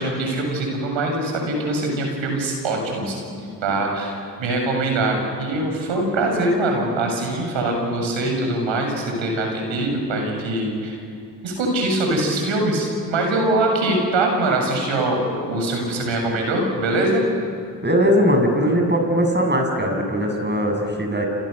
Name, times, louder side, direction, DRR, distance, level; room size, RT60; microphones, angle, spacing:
voice 1, 0.0-11.0 11.4-17.2, right 2 dB, 65° right, 2 dB, 7.4 m, -23 dB
voice 2, 17.8-21.3, equal, 20° right, 3 dB, 7.6 m, -20 dB
28.5 x 28.0 x 6.8 m, 2.4 s
hypercardioid pair, 40°, 49 cm